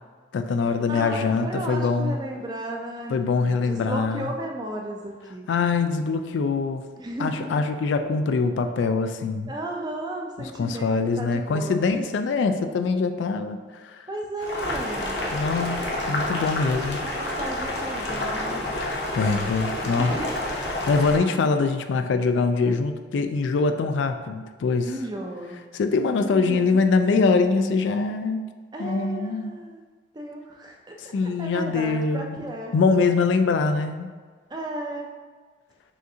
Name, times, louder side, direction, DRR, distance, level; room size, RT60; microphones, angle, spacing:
voice 1, 0.3-2.2 3.1-4.3 5.5-6.8 7.2-9.5 10.6-13.6 13.8-14.0 15.3-17.0 19.1-20.1 20.5-24.9 25.7-28.5 28.8-29.5 31.0-34.1, left 4 dB, 80° left, 8 dB, 0.3 m, -23 dB
voice 2, 0.9-5.5 7.0-7.6 9.5-12.0 12.2-12.6 14.1-15.3 17.0-18.7 20.0-20.5 24.8-25.6 26.1-26.9 28.7-29.8 30.1-32.7 34.5-35.1, right 1 dB, 20° right, 1 dB, 0.4 m, -34 dB
Boiling, 14.4-21.2, left 1 dB, 65° left, 0.7 m, -29 dB
6.3 x 2.5 x 2.7 m, 1.5 s
head